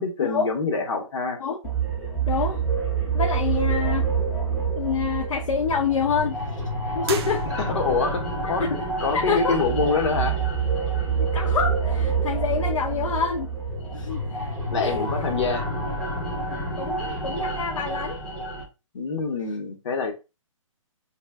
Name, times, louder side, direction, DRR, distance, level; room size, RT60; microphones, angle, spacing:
voice 1, 0.0-1.4 7.6-8.6 9.0-10.4 12.9-13.1 14.7-15.7 18.9-20.1, left 4 dB, 60° left, 0.9 m, -26 dB
sound 1, 1.6-18.6, right 4 dB, 5° left, 0.4 m, -27 dB
voice 2, 2.3-2.6 3.1-4.1 4.8-6.4 6.9-7.4 8.6-8.7 9.1-9.6 11.2-13.5 13.9-15.1 16.5-18.2, left 6 dB, 80° left, 0.5 m, -27 dB
sound 2, 7.0-8.1, right 6 dB, 50° right, 0.5 m, -35 dB
2.2 x 2.2 x 3.4 m
hypercardioid pair, 150°, 17 cm